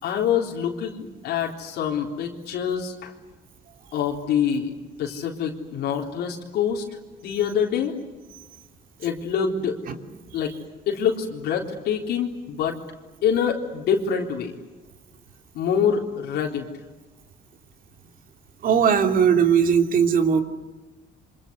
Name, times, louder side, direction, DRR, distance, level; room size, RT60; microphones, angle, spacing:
voice 1, 0.0-3.1 3.9-4.7 5.0-6.8 7.2-8.0 9.0-9.8 10.3-10.5 10.9-12.8 13.2-14.5 15.5-16.7, left 7 dB, 75° left, -1 dB, 3.9 m, -25 dB
voice 2, 18.6-20.4, right 7 dB, 55° right, 6 dB, 3.0 m, -19 dB
27.5 x 25.5 x 8.1 m, 1.2 s
cardioid pair, 110°, 17 cm